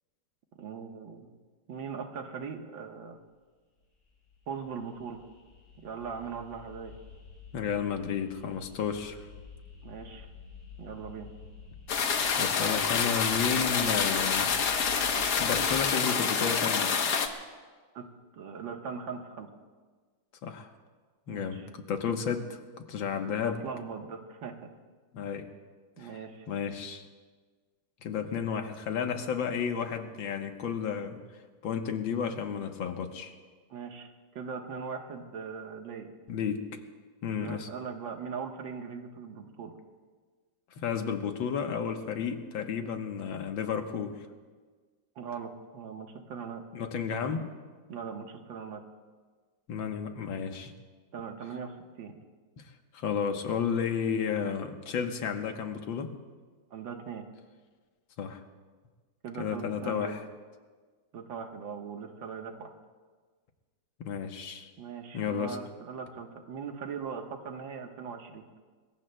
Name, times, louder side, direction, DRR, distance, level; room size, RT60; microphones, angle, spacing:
voice 1, 0.6-1.3 1.7-3.2 4.5-5.2 5.8-6.9 9.8-10.3 10.8-11.3 18.0-18.1 18.3-19.5 21.3-21.7 23.4-24.7 26.0-26.5 33.7-34.1 34.4-36.1 37.4-39.7 45.2-46.6 47.9-48.8 51.1-52.1 56.7-57.3 59.2-60.2 61.1-62.7 64.8-68.5, right 6 dB, 80° right, 4 dB, 2.0 m, -40 dB
sound 1, 3.8-15.8, left 5 dB, 35° left, 7.1 m, -50 dB
voice 2, 7.5-9.3 12.0-14.5 15.4-17.0 20.4-20.7 21.3-23.6 25.1-25.5 26.0-26.1 26.5-27.1 28.0-31.2 31.6-33.3 36.3-36.6 37.2-37.7 40.8-44.2 46.7-47.5 49.7-50.7 52.6-56.1 58.2-58.4 59.4-60.2 64.0-64.7 65.1-65.6, left 7 dB, 85° left, 5 dB, 1.9 m, -32 dB
sound 2, 11.9-17.3, left 6 dB, 60° left, 1.5 m, -27 dB
26.0 x 21.5 x 2.2 m, 1.5 s
omnidirectional pair, 2.1 m